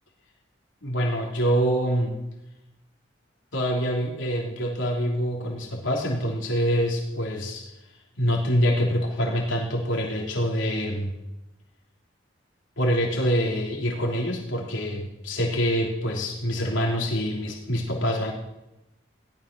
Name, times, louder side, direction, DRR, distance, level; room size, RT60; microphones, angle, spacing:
voice 1, 0.8-2.2 3.5-7.7 8.2-11.1 12.8-18.3, equal, 85° left, -1 dB, 3.3 m, -25 dB
17.5 x 13.0 x 6.1 m, 0.91 s
head